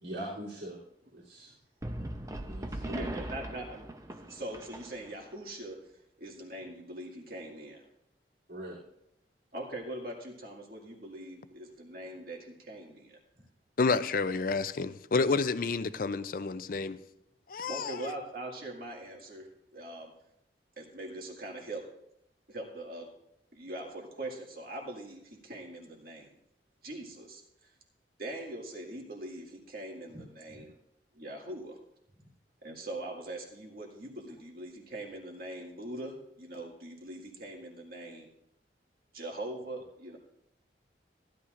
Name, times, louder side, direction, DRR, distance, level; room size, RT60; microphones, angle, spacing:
voice 1, 0.0-0.8 1.1-1.5 2.4-3.0 8.5-8.8 30.1-30.2 30.5-30.6, right 1 dB, 80° right, -8 dB, 3.2 m, -41 dB
sound 1, 1.8-5.3, right 1 dB, 20° right, 0.6 m, -40 dB
voice 2, 2.9-5.8 6.2-7.8 9.5-13.2 17.6-20.1 20.8-21.8 22.5-23.1 23.5-26.4 26.8-27.7 28.2-30.7 31.1-31.8 32.6-38.3 39.1-40.2, right 1 dB, 55° right, 0 dB, 2.0 m, -42 dB
voice 3, 13.8-17.0 17.5-18.1, left 4 dB, 50° left, 14 dB, 0.4 m, -29 dB
15.0 x 11.5 x 2.5 m, 0.79 s
head